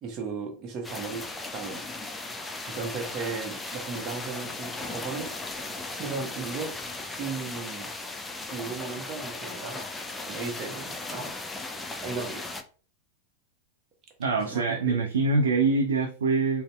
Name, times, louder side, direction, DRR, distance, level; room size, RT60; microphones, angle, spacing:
voice 1, 0.0-1.3 1.5-2.3 2.7-5.3 6.0-6.8 7.2-7.9 8.5-9.9 10.3-11.3 12.0-12.5 14.4-14.7, right 4 dB, 30° right, 0.8 m, -36 dB
sound 1, 0.8-12.6, left 2 dB, 10° left, 0.4 m, -37 dB
voice 2, 14.2-16.6, right 3 dB, 65° right, 0.4 m, -24 dB
3.9 x 2.0 x 2.3 m
figure-of-eight pair, 90°, 0 cm